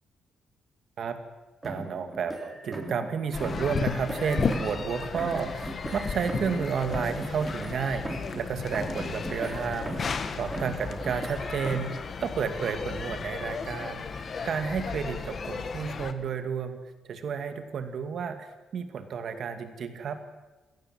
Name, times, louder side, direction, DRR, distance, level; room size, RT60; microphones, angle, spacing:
sound 1, 1.6-3.1 3.4-4.9 5.2-8.5 8.7-10.2 10.5-12.0, right 1 dB, 15° right, 2.8 m, -38 dB
voice 1, 1.6-16.8 17.1-20.2, right 6 dB, 45° right, 8 dB, 2.4 m, -31 dB
sound 2, 3.3-16.1, left 5 dB, 35° left, 1.4 m, -34 dB
29.5 x 17.0 x 8.0 m, 1.1 s
cardioid pair, 175°, 0 cm